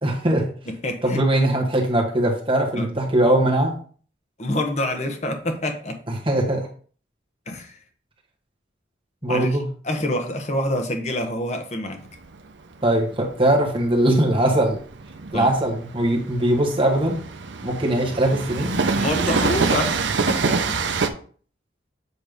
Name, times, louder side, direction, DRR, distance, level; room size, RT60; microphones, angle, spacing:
voice 1, 0.0-0.5 1.0-3.7 6.1-6.7 9.2-9.7 12.8-14.8 15.3-17.2 17.6-18.8, right 1 dB, 30° right, 0 dB, 1.5 m, -21 dB
voice 2, 0.7-1.2 2.7-2.9 4.4-6.0 7.5-7.8 9.3-9.6 9.8-12.1 15.3-15.5 18.9-19.9 20.3-20.6, left 1 dB, 40° left, 4 dB, 1.1 m, -26 dB
Train, 12.0-21.1, right 4 dB, 80° right, 0.7 m, -26 dB
8.0 x 3.2 x 5.2 m, 0.44 s
head